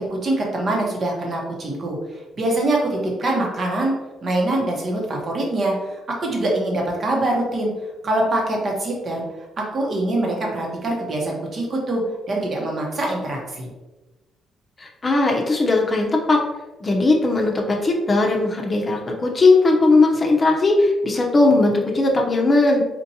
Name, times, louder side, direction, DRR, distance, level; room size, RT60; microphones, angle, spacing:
voice 1, 0.1-2.0 2.4-4.0 4.2-7.7 8.0-9.2 9.7-12.0 12.3-13.7, right 1 dB, 45° right, -1 dB, 1.0 m, -24 dB
voice 2, 14.8-16.4 16.8-22.8, left 2 dB, 30° left, 0 dB, 0.7 m, -18 dB
4.4 x 2.5 x 2.8 m, 1.1 s
cardioid pair, 90°, 0 cm